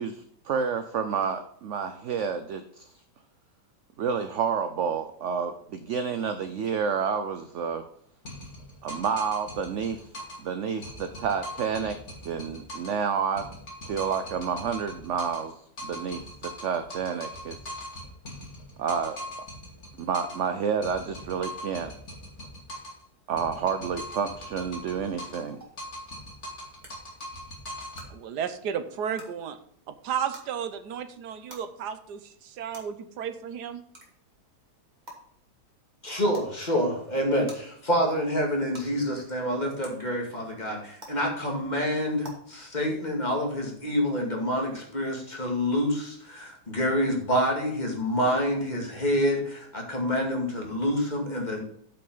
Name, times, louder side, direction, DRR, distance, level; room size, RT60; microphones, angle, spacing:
voice 1, 0.0-2.8 4.0-7.8 8.8-10.0 10.4-12.0 12.2-13.4 13.9-15.5 15.8-17.6 18.8-19.2 20.0-21.9 23.3-25.6, right 6 dB, 60° right, 9 dB, 0.8 m, -29 dB
sound 1, 8.2-10.5 10.8-13.0 13.4-15.5 15.8-20.5 20.8-23.0 23.4-25.5 25.8-28.1, equal, 40° left, 2.6 m, -40 dB
sound 2, 25.6-25.7 26.8-26.9 27.9-28.0 29.1-29.2 30.3-30.4 31.5-31.6 32.7-32.8 33.9-34.1 35.1-35.2 36.3-36.5 37.5-37.6 38.7-38.8 39.8-39.9 41.0-41.1 42.2-42.3, right 1 dB, 25° right, 2.5 m, -43 dB
voice 2, 28.1-29.6 29.9-33.8, right 8 dB, 75° right, 10 dB, 1.4 m, -33 dB
voice 3, 36.0-51.6, equal, 25° left, 0 dB, 2.4 m, -27 dB
8.8 x 5.9 x 5.5 m, 0.66 s
omnidirectional pair, 1.8 m